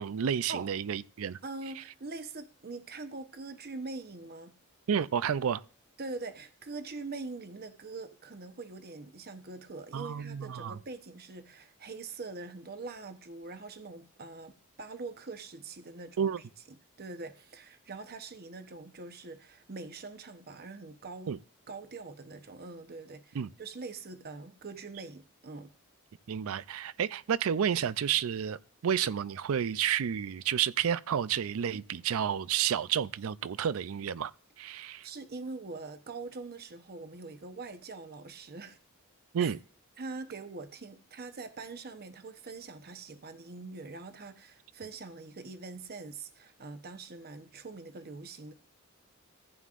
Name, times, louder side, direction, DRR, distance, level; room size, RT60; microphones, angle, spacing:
voice 1, 0.0-1.4 4.9-5.6 9.9-10.8 16.2-16.4 21.3-21.4 23.3-23.5 26.3-28.6 28.8-34.3 34.6-35.1 39.3-39.6, right 8 dB, 70° right, 0.4 m, -30 dB
voice 2, 1.4-4.5 6.0-21.4 21.7-25.7 35.0-38.8 39.4-39.5 40.0-48.5, right 3 dB, 45° right, 1.0 m, -43 dB
15.0 x 9.1 x 2.5 m
head